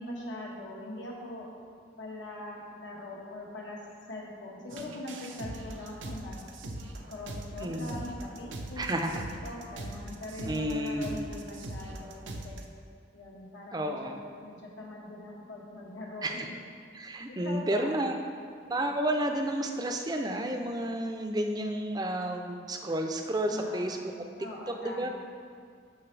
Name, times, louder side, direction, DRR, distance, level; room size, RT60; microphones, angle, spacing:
voice 1, 0.0-1.5 2.0-3.8 4.1-6.4 7.1-8.9 9.4-12.6 13.1-16.6 17.3-17.9 18.7-18.9 23.4-25.1, left 1 dB, 85° left, -3 dB, 1.5 m, -42 dB
sound 1, 4.7-12.6, right 1 dB, 90° right, 0.7 m, -41 dB
voice 2, 7.6-8.0 8.8-9.2 10.5-11.2 13.7-14.2 16.2-16.5 16.9-18.2 18.7-24.1 24.8-25.1, right 1 dB, 20° right, 4 dB, 0.5 m, -31 dB
12.0 x 5.3 x 3.3 m, 2.2 s
head